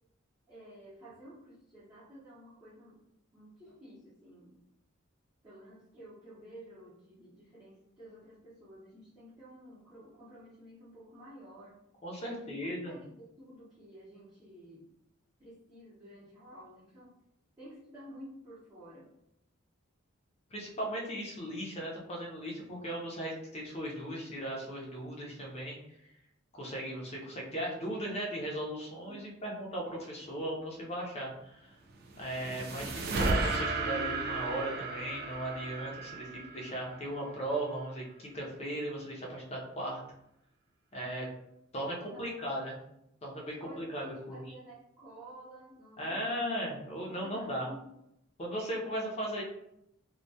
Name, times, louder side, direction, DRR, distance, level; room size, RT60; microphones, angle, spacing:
voice 1, 0.5-3.0 3.3-4.6 5.4-11.8 12.2-14.9 15.4-17.2 17.6-19.1 29.1-29.6 41.7-42.4 43.4-46.5 47.1-47.9, equal, 20° right, -11 dB, 0.7 m, -52 dB
voice 2, 12.0-13.0 20.5-25.8 26.5-31.8 32.2-40.0 40.9-41.3 41.7-42.8 43.2-44.4 46.0-47.7 48.4-49.4, right 1 dB, 30° left, -1 dB, 0.5 m, -37 dB
sound 1, 31.9-37.3, right 3 dB, 50° right, 0.3 m, -34 dB
2.2 x 2.1 x 2.6 m, 0.79 s
head